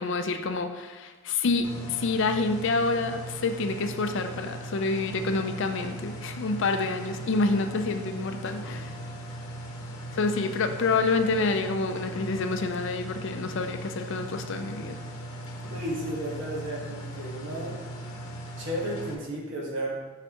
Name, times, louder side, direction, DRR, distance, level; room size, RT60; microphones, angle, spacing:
voice 1, 0.0-8.9 10.1-15.0, left 3 dB, 55° left, 7 dB, 0.4 m, -28 dB
sound 1, 1.6-19.1, right 1 dB, 80° left, 0.9 m, -39 dB
voice 2, 15.7-17.8 18.6-20.0, right 1 dB, 55° right, -3 dB, 1.4 m, -33 dB
6.2 x 5.7 x 3.0 m, 1.3 s
head